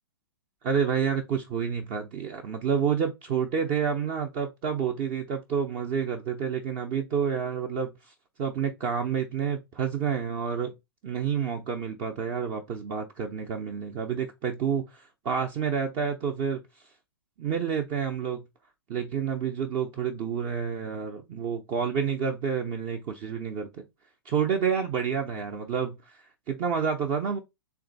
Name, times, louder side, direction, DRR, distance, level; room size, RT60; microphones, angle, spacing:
voice 1, 0.6-10.7 11.0-16.6 17.4-18.4 18.9-23.9 24.2-27.4, right 7 dB, 35° right, 0.6 m, -29 dB
3.4 x 2.7 x 3.9 m
hypercardioid pair, 130°, 13 cm